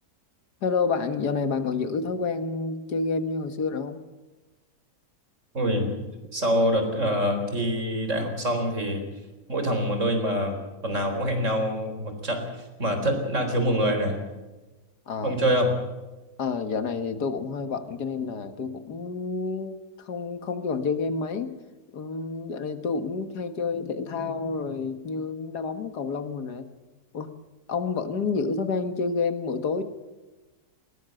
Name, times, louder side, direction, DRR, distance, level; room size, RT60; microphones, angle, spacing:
voice 1, 0.6-4.0 15.1-15.4 16.4-21.5 21.9-26.7 27.1-27.4 27.7-29.8, left 4 dB, 90° left, 9 dB, 2.1 m, -29 dB
voice 2, 5.5-6.0 6.3-9.0 9.5-10.6 10.8-14.2 15.2-15.7, equal, 50° right, 5 dB, 4.5 m, -25 dB
20.5 x 19.0 x 7.8 m, 1.2 s
omnidirectional pair, 1.7 m